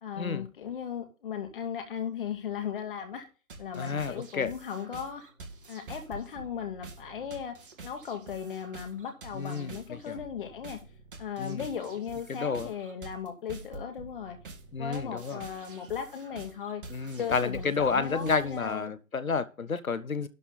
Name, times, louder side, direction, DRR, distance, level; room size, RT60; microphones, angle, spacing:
voice 1, 0.0-3.3 3.6-5.3 5.7-7.6 7.8-10.8 11.2-14.4 14.8-16.8 17.2-18.9, left 8 dB, 40° left, 2.6 m, -37 dB
sound 1, 3.5-18.7, right 3 dB, 40° right, 2.2 m, -47 dB
voice 2, 3.7-4.5 9.3-10.2 11.4-11.6 12.3-12.7 14.7-15.4 16.9-20.3, left 5 dB, 75° left, 1.3 m, -30 dB
12.5 x 4.5 x 6.9 m
figure-of-eight pair, 145°, 42 cm